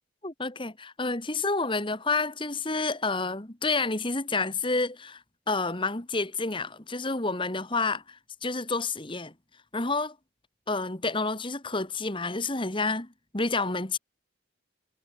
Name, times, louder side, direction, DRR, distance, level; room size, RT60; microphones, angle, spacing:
voice 1, 0.2-5.2 5.5-9.3 9.7-10.2 10.7-14.0, left 3 dB, 25° left, 1.8 m, -29 dB
head